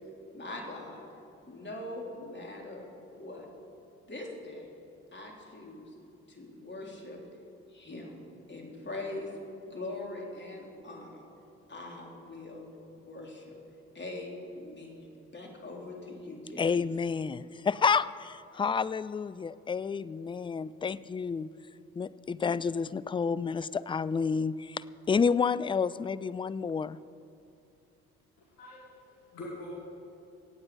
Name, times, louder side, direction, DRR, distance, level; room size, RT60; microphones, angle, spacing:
voice 1, 0.3-1.0 1.4-2.9 3.2-3.5 4.0-4.7 5.1-5.9 6.3-7.2 7.7-8.2 8.5-9.3 9.7-11.3 11.7-12.7 13.0-13.6 13.9-16.8, left 2 dB, 30° left, 0 dB, 3.6 m, -42 dB
voice 2, 16.6-21.5 22.0-27.0, left 5 dB, 15° left, 18 dB, 0.4 m, -30 dB
voice 3, 28.4-29.7, left 1 dB, 70° left, -2 dB, 2.2 m, -44 dB
23.5 x 8.8 x 4.9 m, 2.8 s
hypercardioid pair, 50°, 34 cm